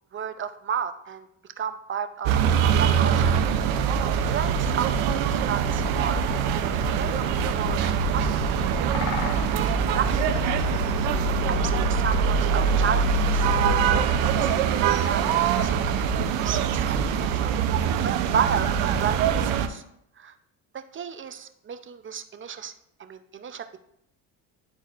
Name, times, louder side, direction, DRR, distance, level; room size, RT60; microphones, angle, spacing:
voice 1, 0.1-1.3 1.6-3.3 4.3-8.6 9.2-10.2 11.5-14.7 15.0-15.7 16.1-17.6 18.0-19.8 20.2-20.3 20.7-22.7 23.0-23.8, right 7 dB, 30° right, 9 dB, 0.6 m, -33 dB
sound 1, 2.2-19.7, right 6 dB, 90° right, 0.7 m, -23 dB
Bird vocalization bird call bird song, 6.5-11.5, left 3 dB, 85° left, 1.4 m, -40 dB
11.0 x 4.0 x 2.5 m, 0.73 s
supercardioid pair, 80°, 38 cm